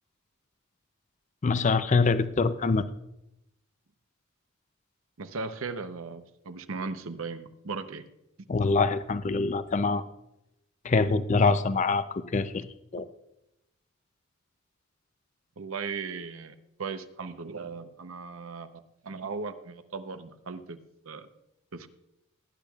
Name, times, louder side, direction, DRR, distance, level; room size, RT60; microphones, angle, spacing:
voice 1, 1.4-2.8 8.5-10.0 10.8-12.6 12.9-13.0, left 4 dB, 35° left, 12 dB, 0.4 m, -24 dB
voice 2, 5.2-8.0 13.0-13.1 15.6-20.8 21.1-21.3 21.7-21.9, right 4 dB, 70° right, 10 dB, 0.8 m, -37 dB
18.5 x 10.0 x 2.4 m, 0.86 s
head